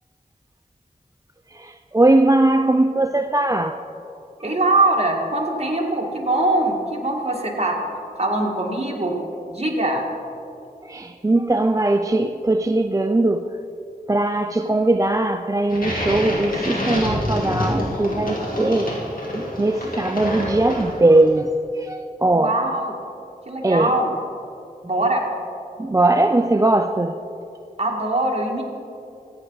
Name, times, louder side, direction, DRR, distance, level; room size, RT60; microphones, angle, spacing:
voice 1, 1.5-3.8 4.4-4.5 10.8-13.5 14.1-19.0 19.3-22.6 23.6-23.9 25.8-27.2, right 2 dB, 20° right, 7 dB, 0.4 m, -20 dB
voice 2, 4.4-7.8 8.2-9.2 9.5-10.0 22.3-22.9 23.5-24.1 24.8-25.2 27.8-28.6, right 2 dB, 40° right, 0 dB, 1.8 m, -22 dB
sound 1, 15.7-21.2, equal, 65° left, 2.6 m, -27 dB
14.5 x 9.0 x 4.0 m, 2.7 s
wide cardioid pair, 45°, 16 cm